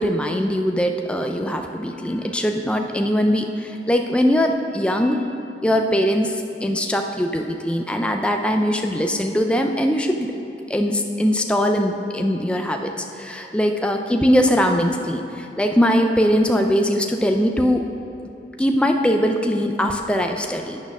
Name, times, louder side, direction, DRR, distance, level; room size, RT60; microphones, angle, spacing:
voice 1, 0.0-5.2 5.6-10.3 10.7-17.8 18.6-20.8, equal, 5° left, 3 dB, 0.4 m, -21 dB
9.5 x 6.6 x 5.9 m, 2.9 s
head